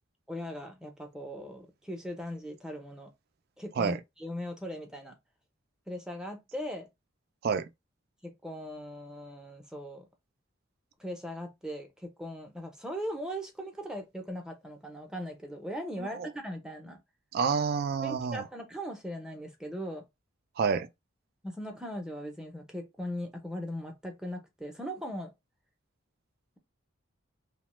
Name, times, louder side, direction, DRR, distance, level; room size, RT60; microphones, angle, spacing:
voice 1, 0.3-3.1 3.6-5.1 5.9-6.9 8.2-10.1 11.0-17.0 18.0-20.1 21.4-25.3, equal, 5° right, 0.6 m, -39 dB
voice 2, 17.3-18.4 20.6-20.9, right 6 dB, 50° right, 0.3 m, -28 dB
2.9 x 2.1 x 3.0 m
head